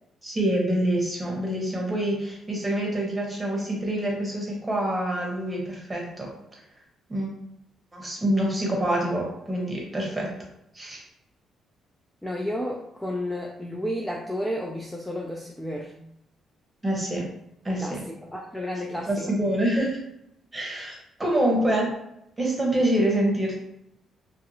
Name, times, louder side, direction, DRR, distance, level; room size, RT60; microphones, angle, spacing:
voice 1, 0.2-6.3 7.1-7.3 7.9-10.3 10.7-11.0 16.8-17.3 17.6-18.0 18.9-20.0 20.5-21.9 22.4-23.6, right 1 dB, 20° right, -2 dB, 0.9 m, -26 dB
voice 2, 12.2-15.9 17.8-19.3, left 1 dB, 5° left, -2 dB, 0.3 m, -32 dB
2.5 x 2.4 x 2.7 m, 0.79 s
cardioid pair, 90°, 0 cm